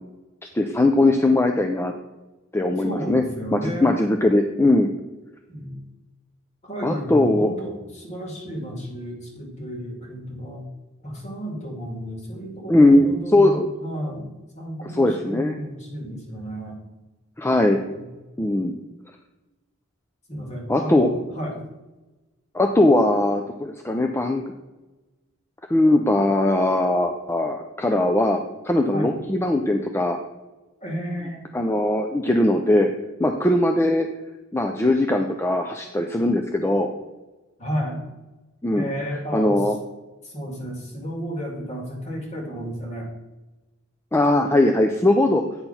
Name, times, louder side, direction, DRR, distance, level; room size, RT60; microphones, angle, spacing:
voice 1, 0.5-1.9 2.5-3.2 3.5-4.9 6.8-7.5 12.7-13.7 14.9-15.6 17.4-17.8 18.4-18.8 20.7-21.1 22.5-24.5 25.7-28.4 28.6-30.2 31.5-32.9 33.2-34.1 34.5-36.9 38.6-38.9 39.3-39.8 44.1-45.4, left 1 dB, 10° left, 4 dB, 0.4 m, -20 dB
voice 2, 2.8-3.9 5.5-5.8 6.6-10.6 11.0-16.8 17.9-18.1 20.3-21.6 28.9-29.1 30.8-31.5 37.6-38.0 38.7-39.7 40.2-43.1, equal, 35° left, 0 dB, 2.0 m, -32 dB
9.0 x 4.5 x 5.6 m, 1.1 s
head